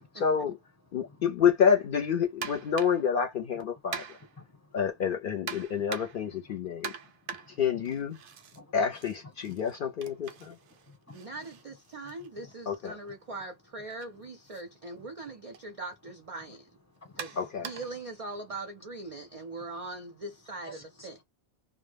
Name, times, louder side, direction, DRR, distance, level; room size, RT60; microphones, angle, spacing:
voice 1, 0.2-0.6 0.9-4.2 4.7-6.9 7.5-8.2 8.7-10.6 12.7-13.0 17.4-17.7, left 7 dB, 60° left, 0.6 m, -28 dB
sound 1, 2.4-3.1 3.9-4.4 5.5-6.3 6.8-8.6 8.9-12.8 13.9-14.1 14.5-14.6 15.5-15.7 17.2-18.0, right 7 dB, 90° right, 0.9 m, -42 dB
voice 2, 4.4-4.8 7.3-7.6 8.6-8.7 10.9-11.3 12.2-12.5 15.0-15.1 16.5-16.6 16.9-17.4 20.6-21.2, left 1 dB, 15° left, 0.8 m, -52 dB
voice 3, 11.1-16.7 17.2-17.4 17.6-21.2, right 2 dB, 55° right, 0.4 m, -41 dB
2.1 x 2.0 x 3.2 m
omnidirectional pair, 1.1 m